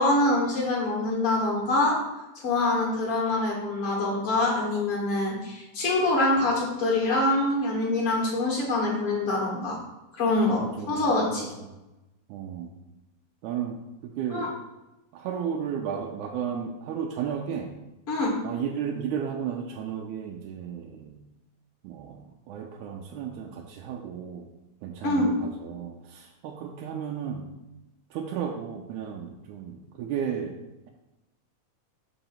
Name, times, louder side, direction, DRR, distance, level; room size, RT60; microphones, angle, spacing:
voice 1, 0.0-2.0 2.4-9.8 10.1-11.5 14.3-14.5 18.1-18.3 25.0-25.3, left 2 dB, 50° left, -4 dB, 2.3 m, -25 dB
voice 2, 10.6-11.0 11.3-11.7 12.3-12.7 13.4-14.5 15.1-17.7 18.4-21.2 21.8-22.2 22.5-24.5 24.8-27.5 28.1-30.6, right 8 dB, 90° right, 1 dB, 2.1 m, -34 dB
5.4 x 3.9 x 5.7 m, 0.99 s
omnidirectional pair, 3.4 m